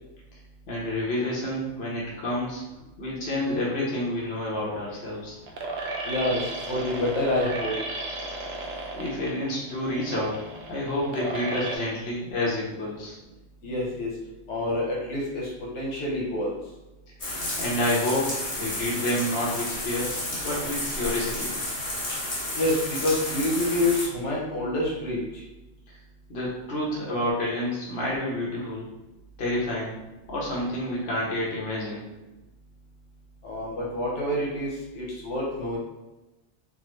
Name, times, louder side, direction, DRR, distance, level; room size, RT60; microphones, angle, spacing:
voice 1, 0.7-2.6 3.0-5.4 9.0-13.2 17.6-21.5 26.3-28.9 29.4-30.0 30.3-32.1, left 1 dB, 60° left, -5 dB, 1.1 m, -29 dB
sound 1, 4.2-11.8, right 2 dB, 75° right, 0.8 m, -35 dB
voice 2, 6.0-7.7 13.6-14.1 14.5-16.5 22.5-25.2 33.4-35.8, left 1 dB, 90° left, -4 dB, 1.1 m, -27 dB
sound 2, 17.2-24.1, left 1 dB, 35° left, 0.8 m, -31 dB
3.5 x 2.0 x 3.1 m, 1.0 s
omnidirectional pair, 1.2 m